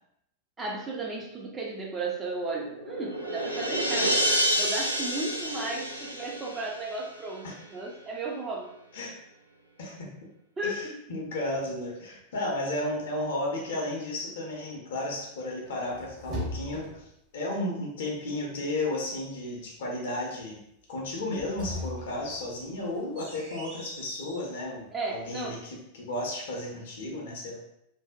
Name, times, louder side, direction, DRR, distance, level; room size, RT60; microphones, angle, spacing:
voice 1, 0.6-4.2 4.6-8.7 10.6-11.0 24.9-25.6, right 2 dB, 20° right, -2 dB, 0.4 m, -34 dB
sound 1, 2.6-7.2, right 1 dB, 90° right, 0.4 m, -29 dB
voice 2, 9.8-10.1 10.6-17.0 17.3-20.6 20.9-27.6, left 1 dB, 60° left, -1 dB, 0.6 m, -33 dB
sound 2, 15.7-17.2 21.2-24.5, left 1 dB, 35° right, 0.8 m, -39 dB
2.5 x 2.1 x 2.3 m, 0.78 s
figure-of-eight pair, 90°, 0 cm